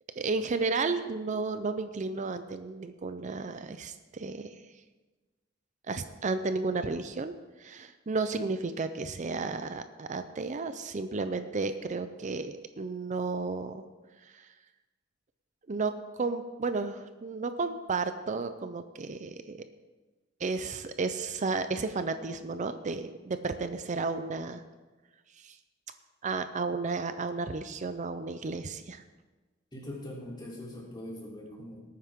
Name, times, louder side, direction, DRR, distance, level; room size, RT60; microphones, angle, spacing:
voice 1, 0.2-4.6 5.9-7.3 7.6-13.8 14.2-14.5 15.7-19.6 20.4-24.6 25.4-25.6 26.2-29.0, right 4 dB, 40° right, 10 dB, 0.5 m, -33 dB
voice 2, 29.7-31.8, left 1 dB, 25° left, -4 dB, 3.3 m, -42 dB
18.5 x 9.5 x 3.6 m, 1.2 s
head